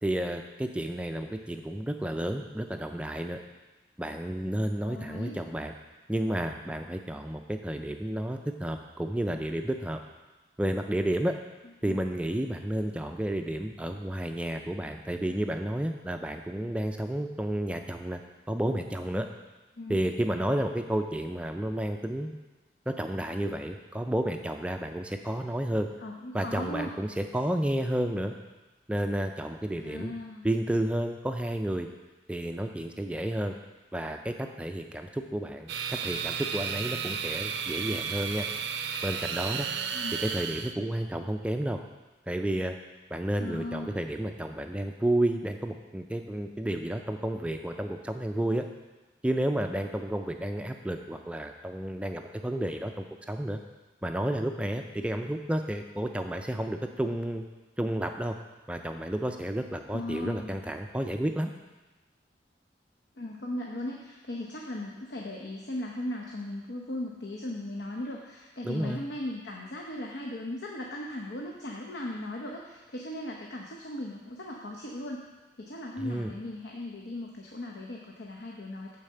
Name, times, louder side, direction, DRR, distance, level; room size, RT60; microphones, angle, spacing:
voice 1, 0.0-3.4 4.0-5.7 6.1-10.0 10.6-11.3 11.8-18.2 18.5-19.3 19.9-22.3 22.9-25.9 26.3-28.3 28.9-30.1 30.4-31.9 32.3-33.5 33.9-38.5 39.0-39.7 40.2-41.8 42.3-42.8 43.1-48.7 49.2-53.6 54.0-57.4 57.8-58.4 58.7-61.5 68.6-69.0 76.0-76.3, right 1 dB, 5° right, 5 dB, 0.4 m, -31 dB
voice 2, 4.8-5.4 11.9-12.0 19.8-20.0 26.0-26.9 29.8-30.5 39.9-40.2 43.4-44.0 59.9-60.6 63.2-75.2 75.6-79.0, left 1 dB, 70° left, -1 dB, 0.8 m, -37 dB
sound 1, 35.7-40.7, right 6 dB, 75° right, 0.5 m, -33 dB
9.0 x 4.1 x 6.6 m, 1.1 s
head